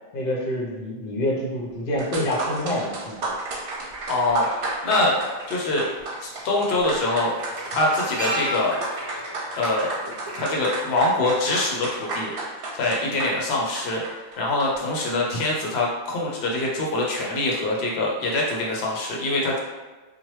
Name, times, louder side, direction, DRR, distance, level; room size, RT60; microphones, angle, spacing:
voice 1, 0.1-3.1, left 1 dB, 60° left, -3 dB, 0.9 m, -27 dB
sound 1, 1.7-1.8 2.0-15.0, right 2 dB, 65° right, 0.8 m, -33 dB
voice 2, 4.1-4.5 4.8-5.2 5.5-5.9 6.2-7.3 7.7-8.8 9.5-9.9 10.3-12.3 12.7-14.0 14.4-19.6, left 2 dB, 90° left, -3 dB, 0.8 m, -24 dB
sound 2, 5.1-5.2 6.4-6.6 6.9-11.2 11.5-11.7, equal, 30° right, 0.5 m, -34 dB
3.0 x 2.2 x 3.0 m, 1.3 s
omnidirectional pair, 1.0 m